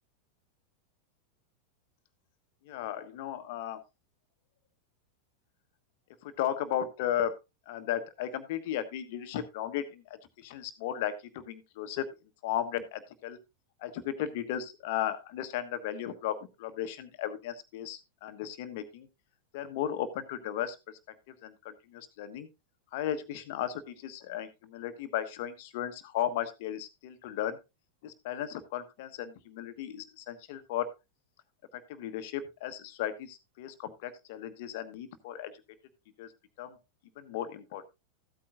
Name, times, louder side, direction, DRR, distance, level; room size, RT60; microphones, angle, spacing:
voice 1, 2.6-3.8 6.2-7.3 7.7-12.1 12.4-13.4 13.8-19.1 19.5-22.5 22.9-27.6 28.0-30.9 31.7-35.5 36.2-36.3 36.6-36.8 37.2-37.9, left 10 dB, 50° left, 11 dB, 1.3 m, -35 dB
15.0 x 8.7 x 2.6 m, 0.24 s
figure-of-eight pair, 90°, 0 cm